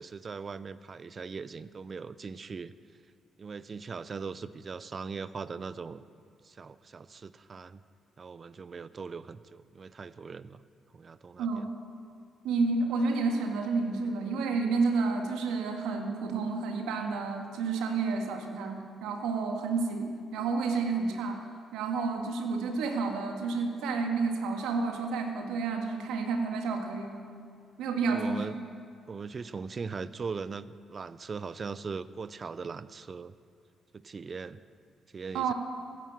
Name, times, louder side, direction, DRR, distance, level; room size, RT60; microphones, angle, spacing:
voice 1, 0.0-2.7 3.4-6.0 6.4-7.8 8.2-10.6 10.9-11.5 28.0-28.6 29.1-33.3 33.9-34.6 35.1-35.5, right 5 dB, 45° right, 16 dB, 0.6 m, -40 dB
voice 2, 11.4-11.7 12.4-21.4 21.7-27.2 27.8-28.5 35.3-35.5, right 4 dB, 75° right, 4 dB, 1.8 m, -30 dB
14.0 x 10.5 x 7.4 m, 2.3 s
hypercardioid pair, 50°, 0 cm